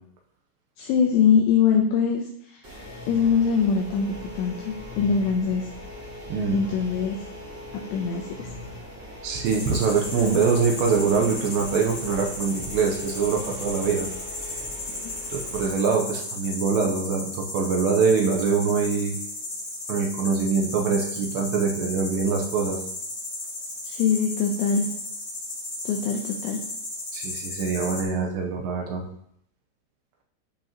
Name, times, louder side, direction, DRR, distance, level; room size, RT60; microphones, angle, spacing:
voice 1, 0.8-2.6 3.1-5.7 6.5-7.2 7.9-8.5 14.9-15.2 23.8-24.9 25.9-26.6, left 6 dB, 80° left, 1 dB, 2.6 m, -23 dB
sound 1, 2.6-15.7, left 1 dB, 35° right, 1.2 m, -40 dB
voice 2, 6.3-6.6 9.2-14.1 15.3-19.1 19.9-22.8 27.1-29.0, right 5 dB, 75° right, 1 dB, 2.7 m, -24 dB
sound 2, 9.4-28.0, left 2 dB, 50° left, 1.6 m, -35 dB
13.5 x 5.2 x 3.0 m, 0.70 s
omnidirectional pair, 5.7 m